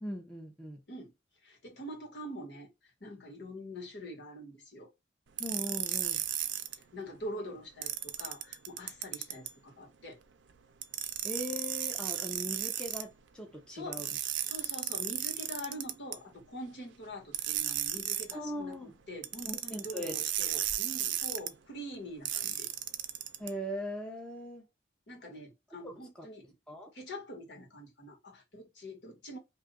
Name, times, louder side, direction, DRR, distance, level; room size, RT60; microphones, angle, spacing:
voice 1, 0.0-0.8 5.4-6.2 11.2-14.1 18.3-18.9 19.5-20.2 23.4-24.7 25.8-26.3 26.7-26.9, equal, 5° left, 0.5 m, -40 dB
voice 2, 1.4-2.7 3.0-4.9 6.7-10.2 13.7-14.0 14.4-22.7 25.1-26.5 26.9-29.4, equal, 75° left, 1.5 m, -44 dB
sound 1, 5.4-6.7 7.8-9.5 10.8-13.0 13.9-16.2 17.3-18.3 19.2-21.5 22.2-23.5, right 12 dB, 80° right, 0.4 m, -34 dB
2.7 x 2.4 x 3.7 m
head